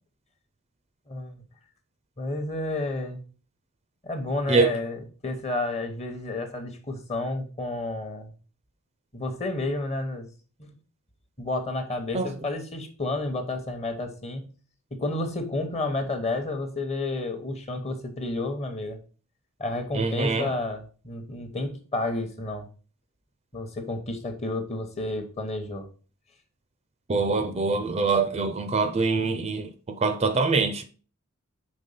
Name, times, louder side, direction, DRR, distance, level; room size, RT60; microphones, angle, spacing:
voice 1, 1.1-1.4 2.2-3.2 4.0-8.3 9.1-10.3 10.6-10.7 11.4-14.5 14.9-19.0 19.6-22.7 23.5-25.9, left 2 dB, 30° left, 1.0 m, -31 dB
voice 2, 19.9-20.5 27.1-30.8, right 4 dB, 30° right, 0.4 m, -24 dB
5.3 x 3.5 x 5.4 m
head